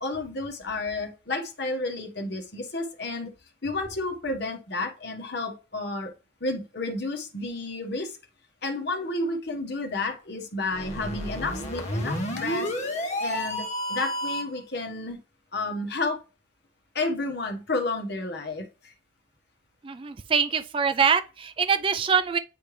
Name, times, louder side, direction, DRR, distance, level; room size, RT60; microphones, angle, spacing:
voice 1, 0.0-3.3 3.6-6.1 6.4-8.1 8.6-12.7 13.2-15.2 15.5-16.2 16.9-18.6, left 2 dB, 55° left, 1.3 m, -31 dB
sound 1, 10.7-14.6, equal, 35° left, 1.2 m, -30 dB
voice 2, 19.8-22.4, right 6 dB, 25° right, 0.3 m, -24 dB
9.6 x 3.3 x 3.3 m
head